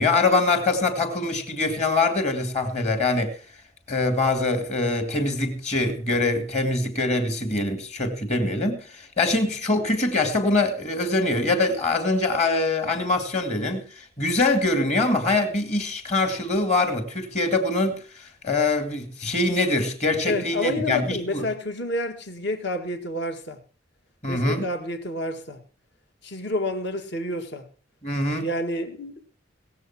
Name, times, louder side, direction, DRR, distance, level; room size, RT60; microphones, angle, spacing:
voice 1, 0.0-3.3 3.9-21.4 24.2-24.7 28.0-28.5, left 2 dB, 35° left, 2.3 m, -24 dB
voice 2, 20.3-23.6 24.3-25.6 26.2-27.6 28.4-29.2, left 1 dB, 60° left, 1.9 m, -29 dB
18.5 x 7.5 x 5.9 m
head